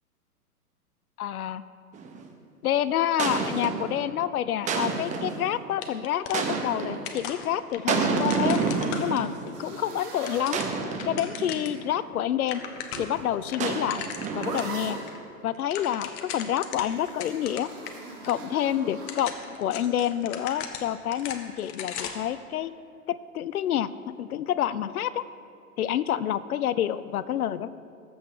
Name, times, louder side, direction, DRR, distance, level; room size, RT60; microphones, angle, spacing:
voice 1, 1.2-1.6 2.6-8.6 9.0-9.3 9.6-10.6 11.1-12.6 13.0-14.0 14.3-15.0 15.4-17.7 18.3-22.7 23.1-25.2 25.8-27.7, left 11 dB, 70° left, 16 dB, 0.6 m, -28 dB
sound 1, 1.9-2.3 3.2-4.0 4.7-5.5 6.3-7.1 7.9-9.5 10.5-11.8 13.6-14.8, right 5 dB, 15° right, 0.8 m, -29 dB
sound 2, 5.8-6.8 7.0-9.5 10.0-11.8 12.1-12.2 12.4-13.2 13.5-14.7 15.1-15.2 15.5-17.9 18.2-18.3 18.9-22.3, left 8 dB, 30° left, 0.9 m, -38 dB
sound 3, 9.5-11.3 12.5-15.2 16.9-19.2, right 3 dB, 80° right, 2.5 m, -40 dB
19.0 x 8.0 x 3.3 m, 2.3 s
hypercardioid pair, 115°, 46 cm